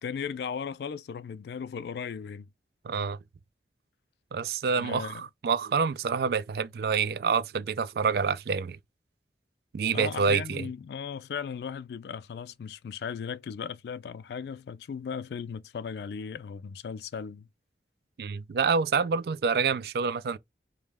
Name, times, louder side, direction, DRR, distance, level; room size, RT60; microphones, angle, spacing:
voice 1, 0.0-2.5 4.8-5.3 9.9-17.5, left 6 dB, 65° left, 0.3 m, -37 dB
voice 2, 2.8-3.2 4.3-8.8 9.7-10.7 18.2-20.4, right 5 dB, 60° right, 0.3 m, -27 dB
5.0 x 2.1 x 3.4 m
head